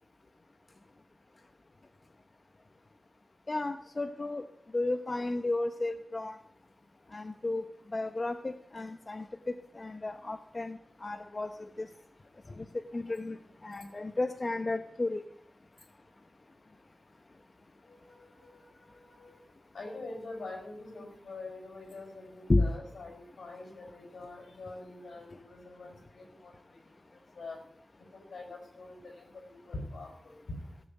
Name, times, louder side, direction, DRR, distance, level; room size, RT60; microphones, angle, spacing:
voice 1, 3.5-4.4 4.7-6.4 7.1-9.3 9.7-11.9 12.6-12.7 12.9-13.4 13.6-15.2 22.5-22.7, left 2 dB, 40° left, 9 dB, 0.8 m, -33 dB
voice 2, 17.9-19.4 19.7-27.0 27.3-27.6 28.1-30.6, left 2 dB, 90° left, 3 dB, 5.0 m, -45 dB
17.0 x 7.2 x 8.0 m, 0.67 s
wide cardioid pair, 65°, 0 cm